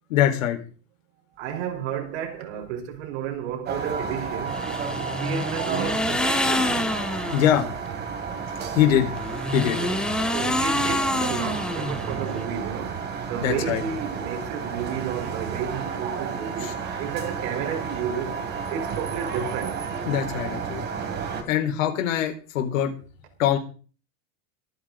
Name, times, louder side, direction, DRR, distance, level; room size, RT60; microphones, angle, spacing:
voice 1, 0.1-0.6 7.3-7.7 8.7-9.1 9.5-9.8 13.4-13.8 16.6-16.7 20.0-20.8 21.5-22.9 23.4-23.6, left 11 dB, 75° left, 4.4 m, -22 dB
voice 2, 1.4-4.6 5.0-6.9 9.8-10.0 10.3-13.0 13.3-18.4 18.7-19.8, right 8 dB, 55° right, 4.2 m, -32 dB
sound 1, 3.7-21.4, right 6 dB, 25° right, 2.9 m, -32 dB
sound 2, 4.5-7.6 9.1-12.4, left 1 dB, ahead, 0.8 m, -27 dB
24.0 x 9.4 x 3.9 m
supercardioid pair, 170°, 40 cm